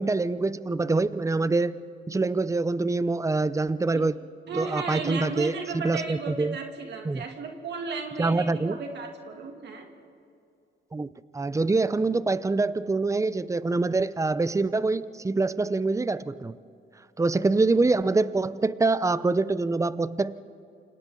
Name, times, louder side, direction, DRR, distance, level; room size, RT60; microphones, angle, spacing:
voice 1, 0.0-1.8 2.1-4.1 4.5-6.6 7.0-7.2 8.2-8.8 10.9-16.6 17.2-20.4, right 3 dB, 15° right, 16 dB, 0.7 m, -25 dB
voice 2, 4.5-9.9, right 4 dB, 60° right, 2 dB, 2.6 m, -34 dB
29.0 x 26.5 x 3.9 m, 2.5 s
cardioid pair, 90°, 20 cm